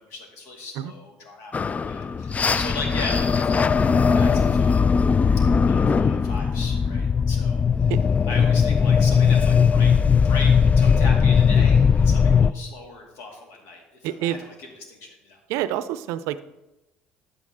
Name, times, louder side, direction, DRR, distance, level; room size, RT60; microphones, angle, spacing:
voice 1, 0.0-5.0 5.6-7.9 8.2-9.9 10.2-15.4, left 3 dB, 70° left, 2 dB, 2.3 m, -37 dB
sound 1, 1.5-12.5, left 6 dB, 30° left, 0.4 m, -19 dB
voice 2, 14.0-14.4 15.5-16.4, right 12 dB, 70° right, 15 dB, 0.5 m, -27 dB
10.5 x 8.4 x 3.6 m, 0.97 s
hypercardioid pair, 60°, 5 cm